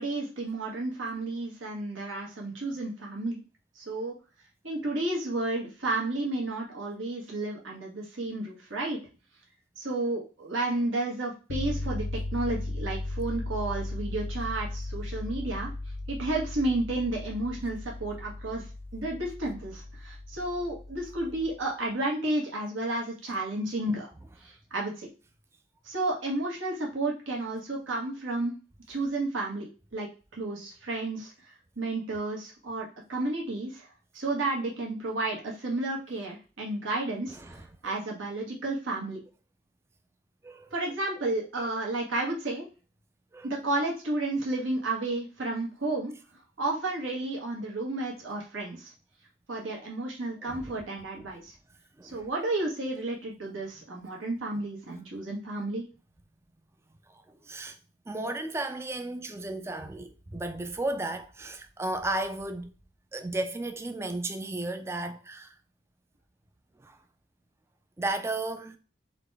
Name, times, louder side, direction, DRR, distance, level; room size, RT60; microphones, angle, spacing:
voice 1, 0.0-3.4 3.7-4.1 4.6-9.0 9.8-15.7 16.1-24.1 24.4-25.1 25.8-28.5 28.9-33.9 34.1-39.2 40.7-42.7 43.4-46.1 46.6-48.9 49.5-51.5 52.0-55.8, right 2 dB, 85° right, 1.6 m, -32 dB
sound 1, 11.5-21.6, left 2 dB, 80° left, 0.6 m, -36 dB
voice 2, 37.4-37.7 40.4-40.7 43.3-43.5 50.5-50.8 51.1-51.3 52.0-52.3 57.1-57.8 58.1-62.7 63.1-65.6 66.8-67.0 68.0-68.8, right 2 dB, 15° right, 0.3 m, -34 dB
4.0 x 3.1 x 3.4 m
head